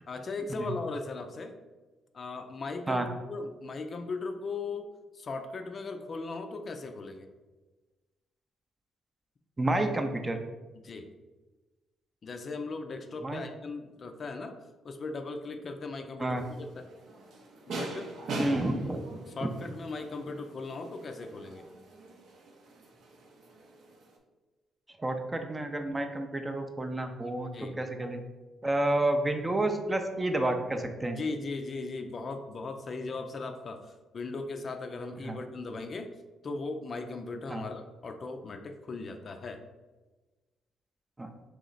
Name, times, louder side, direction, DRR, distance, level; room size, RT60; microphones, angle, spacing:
voice 1, 0.1-1.5 2.1-4.9 5.1-7.3 10.7-11.1 12.2-14.6 14.8-16.4 16.7-16.9 17.7-18.1 19.4-21.6 27.5-27.8 31.2-36.1 36.4-39.6, left 3 dB, 45° left, 6 dB, 0.4 m, -38 dB
voice 2, 9.6-10.4 13.2-13.4 16.2-16.4 18.4-19.0 25.0-27.5 27.8-28.2 28.6-31.2 35.2-35.4 37.5-37.6 41.2-41.3, right 1 dB, 20° right, 6 dB, 0.4 m, -30 dB
sound 1, 16.4-24.2, right 2 dB, 70° right, 0.6 m, -42 dB
3.1 x 3.0 x 3.9 m, 1.2 s
cardioid pair, 90°, 0 cm